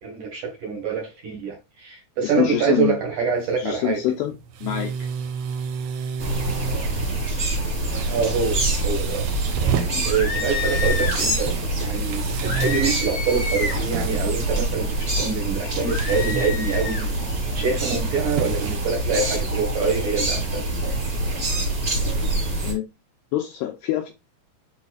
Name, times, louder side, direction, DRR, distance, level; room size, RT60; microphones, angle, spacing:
voice 1, 0.0-4.0 8.1-9.3 10.1-17.1 17.5-20.6, right 5 dB, 60° right, 2.4 m, -26 dB
voice 2, 2.2-3.0 3.6-5.1 9.8-10.1 22.6-22.8 23.3-24.1, left 12 dB, 85° left, 2.4 m, -26 dB
sound 1, 3.4-19.6, right 7 dB, 80° right, 3.5 m, -32 dB
sound 2, 6.2-22.7, right 2 dB, 30° right, 1.8 m, -25 dB
sound 3, 10.0-11.2 12.4-13.9 15.8-17.1, left 4 dB, 45° left, 1.2 m, -29 dB
9.9 x 4.1 x 2.4 m
omnidirectional pair, 5.6 m